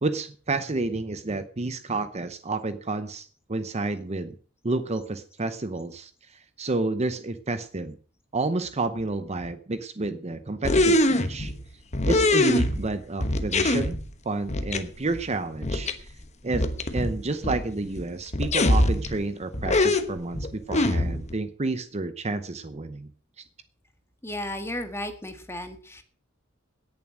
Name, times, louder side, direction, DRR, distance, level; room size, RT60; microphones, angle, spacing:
voice 1, 0.0-4.4 4.6-7.9 8.3-11.5 12.1-13.9 14.2-16.1 16.4-16.6 16.9-23.1, right 3 dB, 30° right, 11 dB, 0.8 m, -30 dB
sound 1, 10.6-11.6 11.9-12.9 13.2-14.0 14.5-14.8 15.1-15.2 15.6-15.9 16.2-16.3 16.5-17.6 18.0-18.1 18.3-19.2 19.5-21.3, left 1 dB, 35° left, 1.2 m, -23 dB
voice 2, 24.2-26.0, left 1 dB, 10° left, 7 dB, 1.7 m, -34 dB
17.5 x 7.1 x 6.2 m, 0.43 s
head